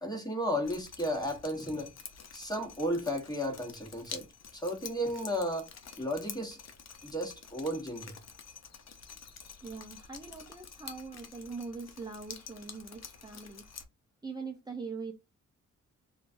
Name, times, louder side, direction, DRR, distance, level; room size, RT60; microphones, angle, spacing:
voice 1, 0.0-1.9 2.3-4.3 4.5-5.7 6.0-6.6 7.0-8.1, equal, 10° left, 1.3 m, -33 dB
Drip, 0.6-13.8, left 6 dB, 55° left, 0.7 m, -49 dB
voice 2, 9.6-13.7 14.2-15.1, right 4 dB, 15° right, 0.6 m, -42 dB
3.0 x 2.4 x 2.6 m
cardioid pair, 65°, 31 cm